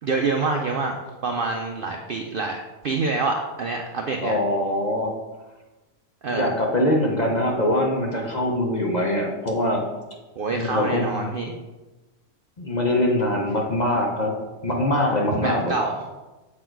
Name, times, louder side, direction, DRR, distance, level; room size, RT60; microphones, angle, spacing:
voice 1, 0.0-2.6 2.8-4.4 6.2-6.6 10.4-11.5 15.3-16.0, right 3 dB, 90° right, 2 dB, 0.4 m, -26 dB
voice 2, 4.2-5.1 6.3-9.9 10.5-11.2 12.6-14.3 14.6-15.7, left 1 dB, 40° left, 0 dB, 0.6 m, -23 dB
6.7 x 4.3 x 4.5 m, 1.1 s
omnidirectional pair, 1.6 m